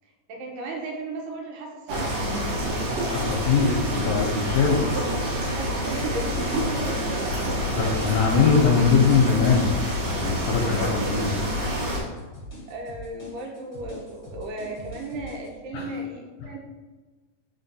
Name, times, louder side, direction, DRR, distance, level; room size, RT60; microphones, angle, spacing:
voice 1, 0.3-2.2 5.5-7.3 12.7-16.6, right 2 dB, 85° right, 0 dB, 2.4 m, -35 dB
sound 1, 1.9-12.0, equal, 65° right, 2.1 m, -27 dB
voice 2, 3.1-4.9 7.7-9.7 10.1-11.4 15.7-15.9, left 5 dB, 75° left, -1 dB, 1.8 m, -22 dB
sound 2, 5.4-15.5, right 1 dB, 35° left, 1.1 m, -43 dB
4.4 x 4.3 x 2.7 m, 1.3 s
omnidirectional pair, 3.7 m